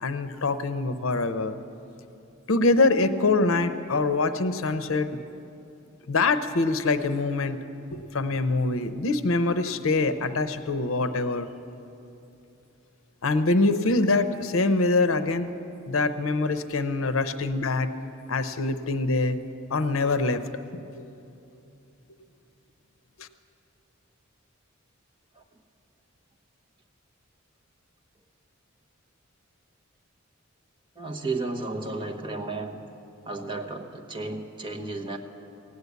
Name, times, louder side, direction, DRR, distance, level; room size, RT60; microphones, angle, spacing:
voice 1, 0.0-1.6 2.5-5.2 6.1-7.6 7.9-11.5 13.2-15.5 15.9-17.9 18.3-19.4 19.7-20.4 21.0-21.1 23.2-23.3, left 3 dB, 75° left, 11 dB, 0.7 m, -24 dB
voice 2, 31.0-32.8 33.3-35.2, right 3 dB, 25° right, 3 dB, 1.1 m, -33 dB
16.5 x 9.6 x 8.1 m, 2.8 s
head